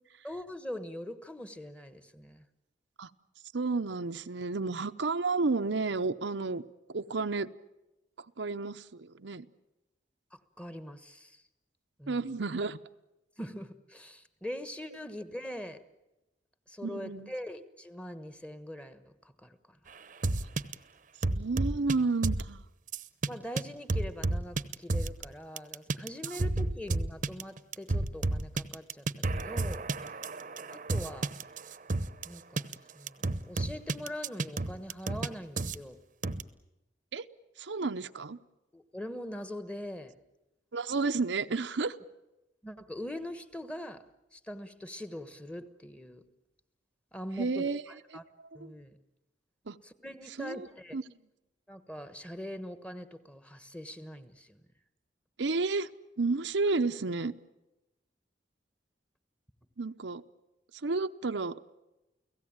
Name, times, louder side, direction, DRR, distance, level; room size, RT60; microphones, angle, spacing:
voice 1, 0.2-2.4 10.3-11.4 12.0-12.3 13.4-15.8 16.7-19.8 23.3-29.9 30.7-31.3 32.2-36.0 38.7-40.1 42.6-44.0 44.3-46.2 47.1-48.2 48.5-49.0 49.8-51.0 51.7-54.6, left 1 dB, 5° left, 11 dB, 1.3 m, -42 dB
voice 2, 3.5-6.6 6.9-7.5 8.2-9.5 12.1-12.8 16.8-17.3 21.3-22.6 37.1-37.3 37.6-38.4 40.7-42.0 47.4-47.8 48.6-48.7 49.7-49.8 50.4-50.7 50.9-51.0 55.4-55.9 56.2-57.3 59.8-60.2 60.8-61.6, right 3 dB, 75° right, 9 dB, 0.8 m, -31 dB
sound 1, 20.2-20.7 21.2-21.9 22.2-22.4 22.9-23.3 23.6-23.7 23.9-25.2 25.6-32.3 32.6-32.7 33.1-35.3 35.6-35.8 36.2-36.4, right 2 dB, 45° right, 0.9 m, -31 dB
30.0 x 17.5 x 8.8 m, 0.98 s
head